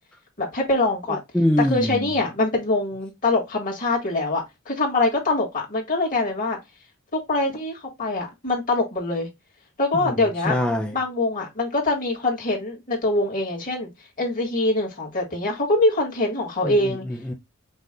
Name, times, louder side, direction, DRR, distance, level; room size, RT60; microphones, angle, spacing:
voice 1, 0.4-1.2 1.6-6.6 7.1-9.3 9.8-10.6 10.9-13.9 14.2-17.1, left 2 dB, 40° left, 2.0 m, -24 dB
voice 2, 1.1-2.1 10.0-11.0 16.6-17.3, left 1 dB, 5° left, 0.5 m, -24 dB
5.4 x 2.5 x 3.7 m
head